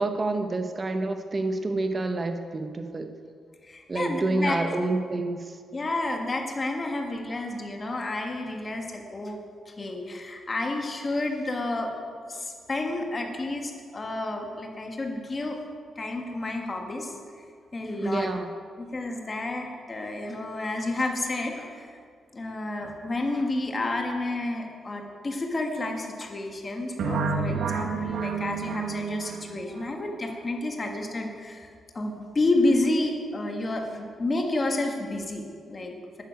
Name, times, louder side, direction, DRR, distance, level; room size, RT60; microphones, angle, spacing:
voice 1, 0.0-3.1 3.9-5.6 18.0-18.5, right 2 dB, 25° right, 7 dB, 0.8 m, -28 dB
voice 2, 3.6-4.6 5.7-9.4 9.7-11.9 12.3-15.6 16.0-17.4 17.7-18.3 18.8-22.0 22.3-31.7 31.9-36.2, left 2 dB, 20° left, 3 dB, 1.6 m, -30 dB
sound 1, 27.0-29.9, right 5 dB, 70° right, 1.3 m, -30 dB
11.5 x 9.8 x 9.5 m, 2.1 s
wide cardioid pair, 180°, 0 cm